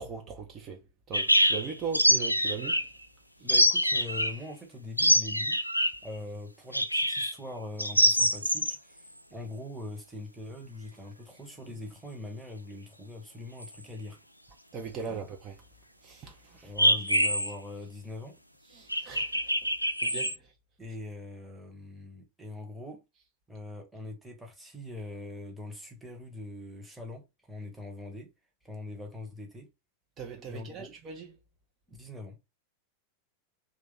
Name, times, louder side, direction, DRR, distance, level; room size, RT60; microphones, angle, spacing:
voice 1, 0.0-2.9 14.7-15.6 16.0-16.7 18.7-19.5 20.0-20.5 30.2-31.3, right 5 dB, 30° right, 0.7 m, -39 dB
sound 1, 1.1-2.9 3.5-4.4 5.0-6.0 6.7-7.3 7.8-8.8 13.6-13.7 16.8-17.5 18.9-20.3, equal, 90° left, 0.3 m, -25 dB
voice 2, 3.4-5.6 6.0-14.2 15.1-15.2 16.6-18.4 20.8-23.0 23.5-28.3 28.6-29.7 30.5-30.9 31.9-32.4, left 2 dB, ahead, 1.0 m, -42 dB
2.9 x 2.4 x 3.6 m
figure-of-eight pair, 90°, 0 cm